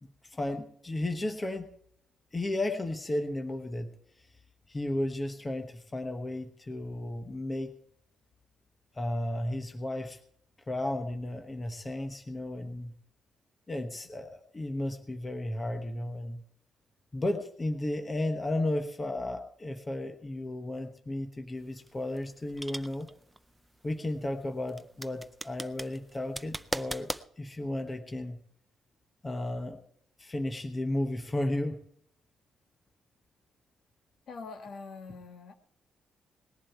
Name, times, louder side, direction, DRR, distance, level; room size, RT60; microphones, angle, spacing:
voice 1, 0.0-1.7 2.3-3.9 4.7-7.7 8.9-10.2 10.7-12.9 13.7-16.4 17.1-23.1 23.8-27.1 27.4-28.4 29.2-29.8 30.2-31.8, left 1 dB, 15° left, 6 dB, 1.1 m, -34 dB
sound 1, 21.6-27.3, right 1 dB, 5° right, 0.5 m, -40 dB
voice 2, 34.3-35.6, left 4 dB, 50° left, 7 dB, 1.4 m, -44 dB
19.0 x 11.0 x 4.5 m, 0.66 s
cardioid pair, 155°, 0 cm